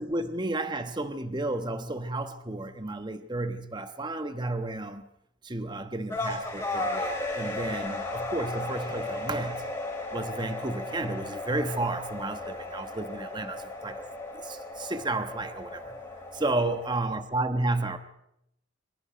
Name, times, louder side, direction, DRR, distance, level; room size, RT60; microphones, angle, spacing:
voice 1, 0.0-5.0 5.4-9.7 10.1-14.1 14.3-16.0 16.3-18.0, right 2 dB, 20° right, 1.2 m, -32 dB
sound 1, 6.1-16.9, left 2 dB, 15° left, 7.6 m, -35 dB
25.5 x 24.5 x 5.1 m
head